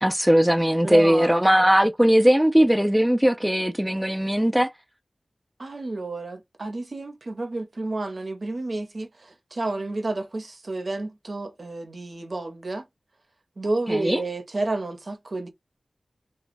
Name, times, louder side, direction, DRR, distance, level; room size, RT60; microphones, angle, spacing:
voice 1, 0.0-4.7 13.9-14.2, equal, 5° right, 0.4 m, -19 dB
voice 2, 0.8-1.3 5.6-12.8 13.6-15.5, right 2 dB, 55° right, 0.6 m, -30 dB
3.0 x 2.2 x 2.5 m
wide cardioid pair, 65°, 0 cm